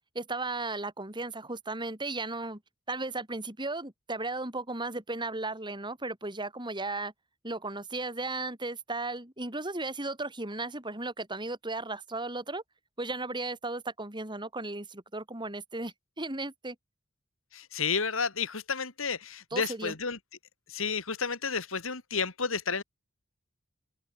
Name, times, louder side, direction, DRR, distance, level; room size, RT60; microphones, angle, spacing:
voice 1, 0.1-2.6 2.9-7.1 7.4-12.6 13.0-16.8 19.5-19.9, right 2 dB, 20° right, 4.4 m, -35 dB
voice 2, 17.5-20.2 20.7-22.8, left 5 dB, 75° left, 2.7 m, -31 dB
head